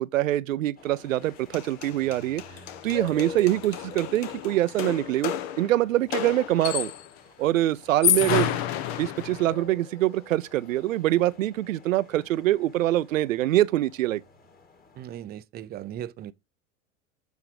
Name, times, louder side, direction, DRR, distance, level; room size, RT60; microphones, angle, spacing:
voice 1, 0.0-2.4 2.8-6.9 7.4-8.6 9.0-14.2, right 14 dB, 75° right, 0.7 m, -24 dB
sound 1, 0.8-15.2, left 4 dB, 20° left, 2.2 m, -47 dB
sound 2, 1.2-1.3 1.5-7.2 7.8-9.6, left 11 dB, 50° left, 1.2 m, -30 dB
voice 2, 15.0-16.3, right 11 dB, 25° right, 0.6 m, -37 dB
8.2 x 4.6 x 4.9 m
hypercardioid pair, 105°, 40 cm